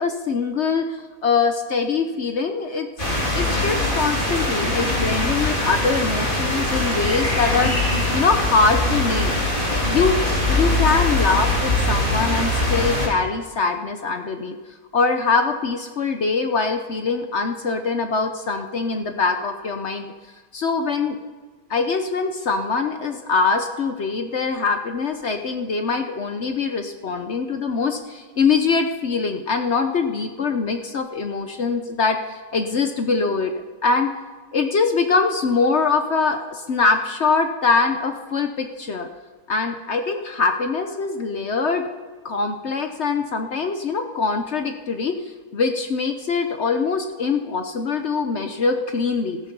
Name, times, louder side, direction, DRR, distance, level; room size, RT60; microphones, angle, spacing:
voice 1, 0.0-2.9 3.3-9.3 9.9-10.1 10.5-14.6 14.9-20.1 20.5-21.2 21.7-33.5 33.8-34.1 34.5-39.1 39.5-41.8 42.2-45.1 45.5-49.4, left 4 dB, 65° left, 6 dB, 0.6 m, -23 dB
sound 1, 3.0-13.1, left 1 dB, 25° left, 3.2 m, -22 dB
18.5 x 14.0 x 5.4 m, 1.4 s
omnidirectional pair, 2.3 m